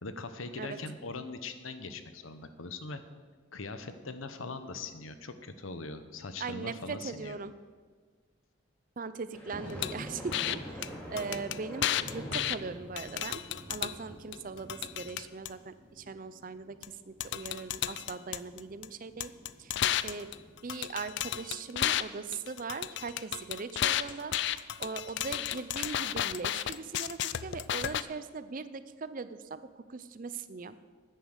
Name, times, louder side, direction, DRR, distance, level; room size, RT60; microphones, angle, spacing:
voice 1, 0.0-3.0 3.5-7.4, left 3 dB, 75° left, 10 dB, 0.9 m, -41 dB
voice 2, 6.4-7.5 9.0-13.4 13.7-16.8 17.1-19.3 19.6-19.7 20.0-20.3 20.6-30.8, right 4 dB, 40° right, 13 dB, 0.5 m, -40 dB
sound 1, 9.3-20.5, equal, 5° left, 2.4 m, -46 dB
sound 2, 9.8-9.9 10.3-10.6 10.8-10.9 11.2-12.6 13.0-13.9 14.3-15.5 16.8-16.9 17.2-18.9 19.2-22.0 22.3-28.0, left 11 dB, 55° left, 0.4 m, -32 dB
10.0 x 9.3 x 6.6 m, 1.5 s
head